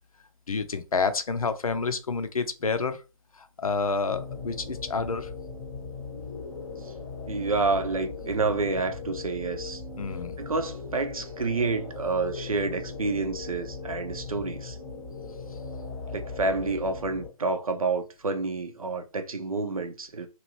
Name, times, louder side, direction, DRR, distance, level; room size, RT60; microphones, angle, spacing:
voice 1, 0.5-3.0 3.3-5.3 10.0-10.4, left 4 dB, 70° left, 0.6 m, -29 dB
sound 1, 4.1-17.3, left 4 dB, 15° left, 0.7 m, -38 dB
voice 2, 7.3-9.8 10.4-14.8 16.1-20.3, right 3 dB, 65° right, 0.7 m, -29 dB
2.9 x 2.5 x 3.0 m
figure-of-eight pair, 140°, 19 cm